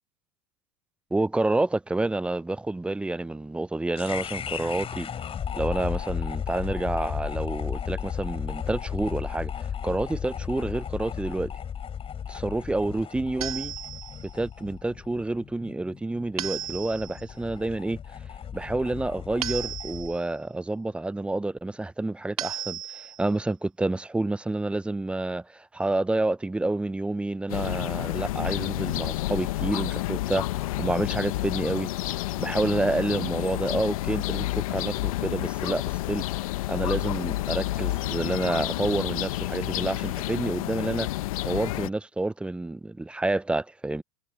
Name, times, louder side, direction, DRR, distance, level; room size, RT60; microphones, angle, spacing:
voice 1, 1.1-5.1 5.5-11.5 12.3-13.7 14.3-18.0 18.5-30.4 30.8-31.9 32.4-35.8 36.1-36.3 36.7-41.1 41.4-44.0, right 2 dB, 5° right, 0.4 m, -29 dB
sound 1, 4.0-20.2, left 8 dB, 30° left, 6.8 m, -35 dB
sound 2, 13.4-14.3 16.4-17.2 19.4-20.3 22.4-23.3, right 10 dB, 85° right, 4.5 m, -35 dB
sound 3, 27.5-41.9, left 17 dB, 70° left, 1.1 m, -30 dB
hypercardioid pair, 95°, 18 cm